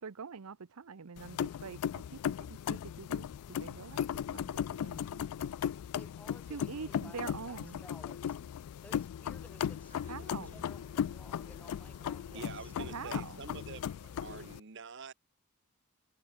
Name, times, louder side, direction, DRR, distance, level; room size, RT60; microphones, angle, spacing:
voice 1, 0.0-2.2 2.5-3.3 3.6-5.5 6.5-7.8 10.1-10.7 12.8-13.4, right 5 dB, 85° right, 0.7 m, -45 dB
sound 1, 1.2-14.6, left 9 dB, 85° left, 0.3 m, -37 dB
voice 2, 5.9-8.4 8.8-12.7, left 1 dB, 5° left, 1.6 m, -56 dB
sound 2, 9.5-14.6, right 3 dB, 30° right, 1.0 m, -61 dB
voice 3, 12.3-14.0 14.2-15.1, right 4 dB, 55° right, 0.9 m, -46 dB
head